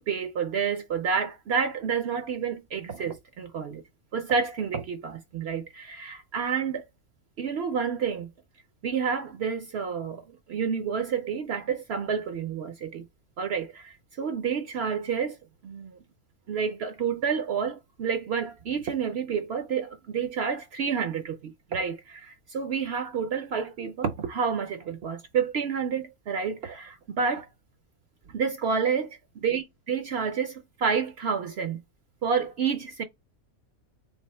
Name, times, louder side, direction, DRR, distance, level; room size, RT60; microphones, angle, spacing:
voice 1, 0.1-3.8 4.1-6.8 7.4-8.3 8.8-13.0 13.4-15.4 15.6-16.0 16.5-27.5 28.3-29.2 29.4-31.8 32.2-33.0, right 6 dB, 65° right, 0.7 m, -29 dB
3.4 x 2.7 x 4.1 m
omnidirectional pair, 1.5 m